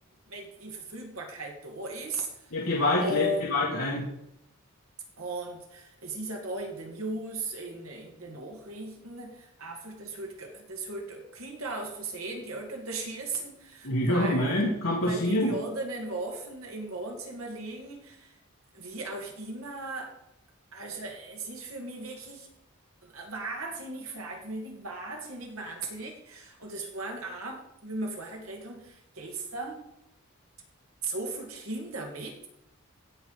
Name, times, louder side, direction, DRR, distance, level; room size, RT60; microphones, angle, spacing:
voice 1, 0.3-2.5 3.0-3.5 5.2-14.6 15.0-18.4 18.7-20.1 20.7-22.5 23.0-29.9 31.0-32.5, right 2 dB, 75° right, 2 dB, 2.3 m, -37 dB
voice 2, 2.5-4.0 13.8-15.5, left 1 dB, 70° left, -4 dB, 1.9 m, -26 dB
16.5 x 6.1 x 4.8 m, 0.81 s
head